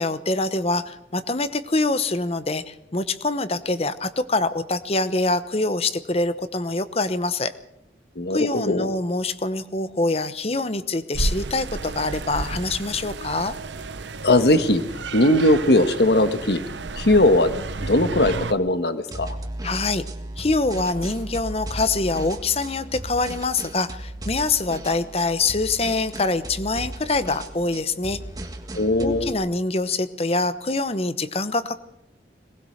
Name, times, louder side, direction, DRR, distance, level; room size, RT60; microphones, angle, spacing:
voice 1, 0.0-7.5 8.3-13.5 19.6-20.0 20.4-28.2 29.0-31.8, left 3 dB, 35° left, 13 dB, 1.0 m, -25 dB
voice 2, 8.1-8.9 14.2-14.8 15.1-16.6 17.0-17.5 17.8-19.4 28.7-29.3, left 1 dB, 65° left, 10 dB, 1.5 m, -19 dB
sound 1, 11.1-18.5, right 3 dB, 85° right, 0.9 m, -32 dB
sound 2, 19.1-29.3, right 1 dB, 20° right, 1.8 m, -36 dB
21.5 x 19.5 x 6.5 m, 0.80 s
head